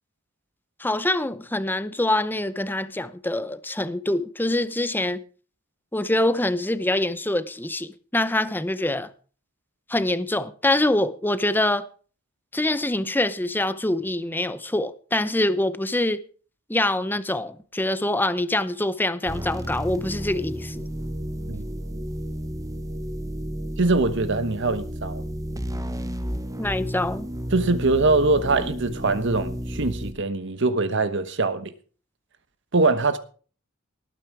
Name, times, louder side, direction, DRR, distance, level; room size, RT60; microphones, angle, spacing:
voice 1, 0.8-5.2 5.9-9.1 9.9-11.8 12.5-16.2 16.7-20.9 26.6-27.3, left 1 dB, 10° left, 0.7 m, -25 dB
sound 1, 19.3-30.1, equal, 15° right, 1.0 m, -32 dB
voice 2, 23.8-25.2 27.5-31.7 32.7-33.2, right 3 dB, 60° right, 1.3 m, -22 dB
19.0 x 9.2 x 4.7 m
head